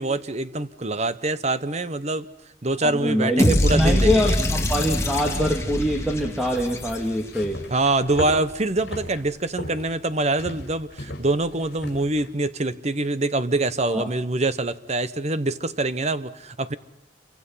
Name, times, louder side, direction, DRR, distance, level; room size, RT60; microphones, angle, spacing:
voice 1, 0.0-2.3 2.6-4.4 7.7-16.7, right 2 dB, 35° right, 1.0 m, -25 dB
voice 2, 2.8-7.6 13.9-14.1, equal, ahead, 2.3 m, -24 dB
sound 1, 3.4-7.5, left 1 dB, 15° left, 2.3 m, -24 dB
sound 2, 7.3-12.3, left 1 dB, 55° left, 5.8 m, -37 dB
29.0 x 24.5 x 5.7 m
head